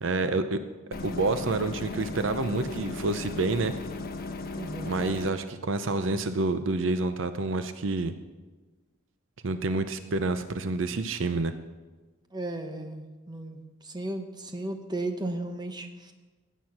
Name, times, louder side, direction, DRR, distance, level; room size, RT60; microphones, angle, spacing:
voice 1, 0.0-0.6 1.0-3.7 4.8-8.1 9.4-11.5, right 3 dB, 65° right, 10 dB, 0.7 m, -28 dB
sound 1, 0.9-5.3, left 3 dB, 50° left, 1.2 m, -36 dB
voice 2, 4.6-5.1 12.3-16.1, right 2 dB, 20° right, 6 dB, 1.1 m, -35 dB
16.0 x 9.1 x 6.1 m, 1.3 s
head